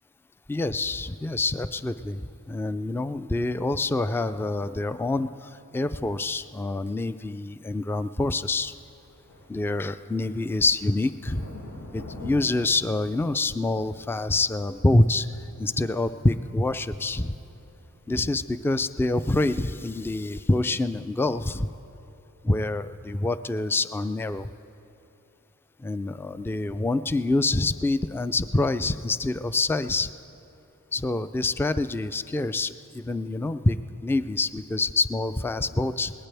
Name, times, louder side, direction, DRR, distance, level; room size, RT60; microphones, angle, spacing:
voice 1, 0.5-2.2 2.5-8.7 9.5-11.4 11.9-15.3 15.6-17.4 18.1-21.7 22.4-24.5 25.8-30.1 30.9-33.8 34.0-36.1, left 2 dB, 5° left, 12 dB, 0.4 m, -26 dB
sound 1, 8.7-19.5, left 1 dB, 75° left, 2.5 m, -47 dB
21.0 x 19.0 x 3.4 m, 2.9 s
wide cardioid pair, 55°, 31 cm